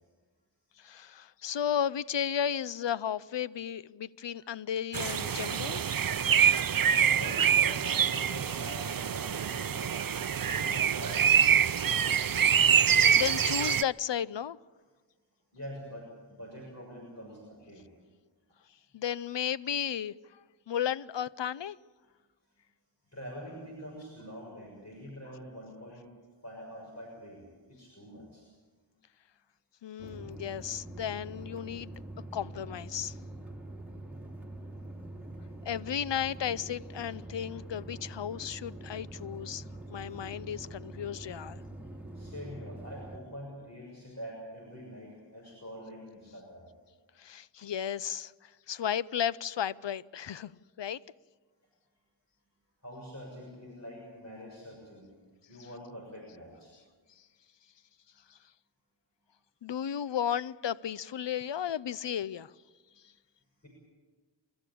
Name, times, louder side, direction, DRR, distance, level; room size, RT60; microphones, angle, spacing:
voice 1, 0.8-5.8 13.1-14.6 18.9-21.8 29.8-31.9 32.3-33.2 35.6-39.6 39.9-41.6 47.2-50.5 50.8-51.0 58.3-58.4 59.6-62.5, left 9 dB, 75° left, 0.6 m, -34 dB
sound 1, 4.9-13.8, right 8 dB, 50° right, 0.6 m, -25 dB
voice 2, 7.0-10.0 10.4-11.6 15.5-17.9 23.1-26.1 26.4-28.5 42.1-46.7 52.8-55.1 55.5-56.8 63.6-63.7, equal, 35° left, 6.7 m, -45 dB
sound 2, 30.0-43.2, right 1 dB, 5° right, 3.0 m, -44 dB
29.0 x 13.5 x 8.5 m
cardioid pair, 40°, 44 cm